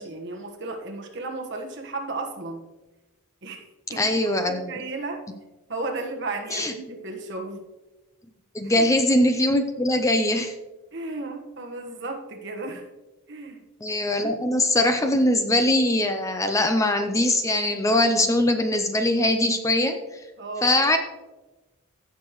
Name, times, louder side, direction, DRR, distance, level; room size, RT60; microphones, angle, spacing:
voice 1, 0.0-2.6 3.4-4.2 4.5-5.2 5.7-7.6 8.8-8.9 10.9-12.8 13.3-13.6 20.4-20.7, right 3 dB, 50° right, 2 dB, 1.4 m, -34 dB
voice 2, 4.0-4.8 6.5-6.7 8.5-10.5 13.8-20.2 20.6-21.0, left 1 dB, 15° left, 7 dB, 0.5 m, -22 dB
16.0 x 6.7 x 3.1 m, 1.1 s
head